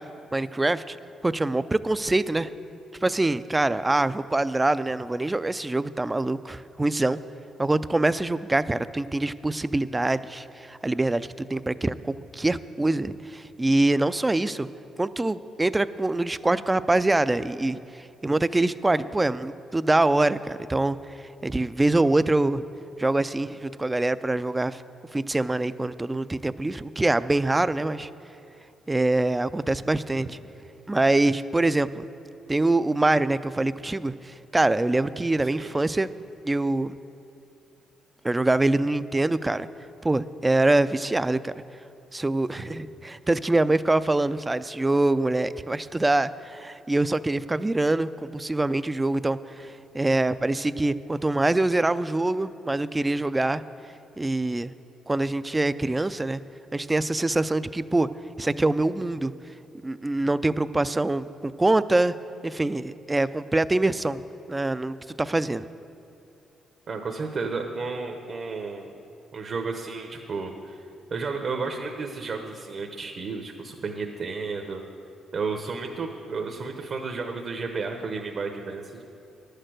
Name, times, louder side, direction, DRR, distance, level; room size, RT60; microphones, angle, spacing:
voice 1, 0.3-1.0 1.2-2.5 3.0-7.2 7.6-14.7 15.0-21.0 21.4-22.6 23.0-24.8 25.1-28.1 28.9-30.4 30.9-32.0 32.5-36.1 36.4-36.9 38.2-39.7 40.0-41.5 42.1-53.6 54.2-54.7 55.1-56.4 56.7-58.1 58.4-59.3 59.8-62.1 62.4-64.2 64.5-65.7, right 2 dB, 15° right, 14 dB, 0.3 m, -24 dB
voice 2, 66.9-68.9 69.3-70.8 71.1-74.8 75.3-79.0, right 4 dB, 50° right, 3 dB, 0.9 m, -32 dB
11.0 x 6.6 x 7.8 m, 2.7 s
cardioid pair, 90°, 0 cm